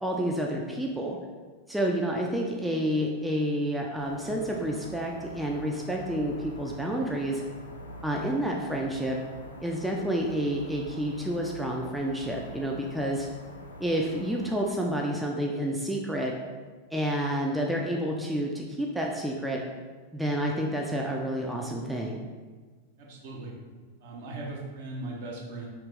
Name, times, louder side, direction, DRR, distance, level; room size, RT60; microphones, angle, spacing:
voice 1, 0.0-1.2 1.7-7.4 8.0-9.2 9.6-13.3 13.8-16.3 16.9-19.6 20.1-22.2, equal, 5° right, -1 dB, 0.3 m, -29 dB
sound 1, 4.0-14.6, equal, 75° left, 0.4 m, -44 dB
voice 2, 23.0-23.5 24.0-25.7, right 2 dB, 50° right, -3 dB, 0.8 m, -38 dB
2.9 x 2.8 x 3.4 m, 1.4 s
figure-of-eight pair, 90°, 0 cm